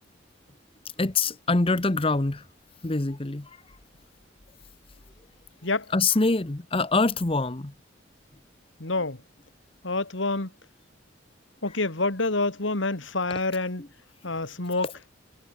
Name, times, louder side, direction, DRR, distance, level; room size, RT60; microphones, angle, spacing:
voice 1, 1.0-2.4 2.8-3.6 5.9-7.7 13.8-13.9 14.8-14.9, left 3 dB, 30° left, 0.9 m, -25 dB
voice 2, 8.8-9.2 9.8-10.5 11.6-13.8 14.2-14.9, left 3 dB, 70° left, 2.4 m, -27 dB
head